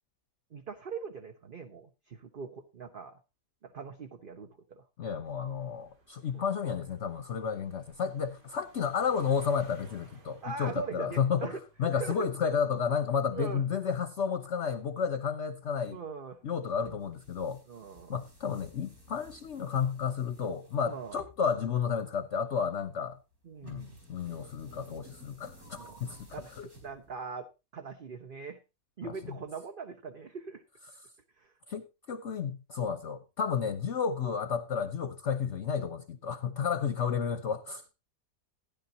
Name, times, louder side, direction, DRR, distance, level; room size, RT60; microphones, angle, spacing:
voice 1, 0.5-3.2 3.6-4.8 6.3-6.4 10.4-11.6 11.9-12.3 13.3-13.6 15.9-16.4 17.7-18.2 20.9-21.2 23.4-24.0 25.8-26.0 26.3-28.6 29.0-30.6 31.4-31.5 33.6-33.7, right 5 dB, 40° right, 1.0 m, -41 dB
voice 2, 5.0-11.5 11.8-16.0 16.4-17.6 18.1-23.2 23.6-26.3 26.6-26.7 31.7-37.8, left 6 dB, 50° left, 1.0 m, -32 dB
sound 1, 5.3-16.0 16.8-17.2, right 3 dB, 85° right, 3.2 m, -60 dB
sound 2, 16.8-27.4, equal, 60° right, 5.2 m, -55 dB
15.5 x 10.5 x 2.8 m
omnidirectional pair, 1.7 m